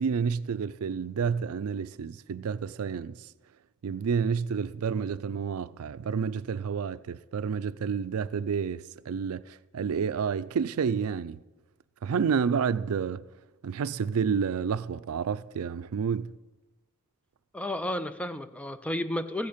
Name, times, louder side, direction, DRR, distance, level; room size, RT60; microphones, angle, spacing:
voice 1, 0.0-3.1 3.8-11.4 12.0-13.3 13.6-16.3, right 6 dB, 80° right, 0.4 m, -29 dB
voice 2, 17.5-19.5, left 1 dB, 5° left, 0.3 m, -32 dB
15.0 x 8.1 x 5.1 m
head